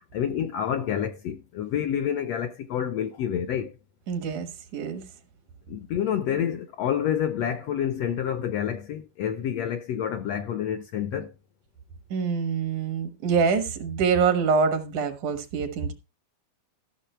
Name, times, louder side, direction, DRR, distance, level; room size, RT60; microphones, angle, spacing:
voice 1, 0.1-3.7 5.7-11.3, left 9 dB, 75° left, 1.5 m, -28 dB
voice 2, 4.1-5.0 12.1-15.9, right 5 dB, 75° right, 2.9 m, -25 dB
14.0 x 6.4 x 4.3 m
omnidirectional pair, 3.6 m